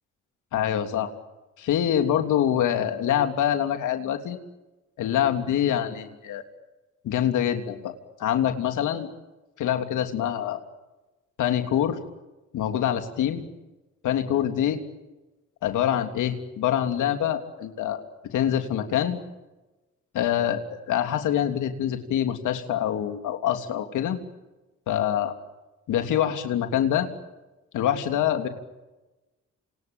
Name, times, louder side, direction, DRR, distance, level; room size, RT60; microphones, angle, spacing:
voice 1, 0.5-1.1 1.6-4.4 5.0-6.4 7.0-9.1 9.6-10.6 11.4-12.0 12.5-13.4 14.0-14.8 15.6-18.0 18.3-19.2 20.1-24.2 24.9-25.3 25.9-27.1 27.7-28.5, left 10 dB, 80° left, 6 dB, 3.3 m, -25 dB
28.5 x 28.0 x 7.1 m, 1.1 s
cardioid pair, 90°, 30 cm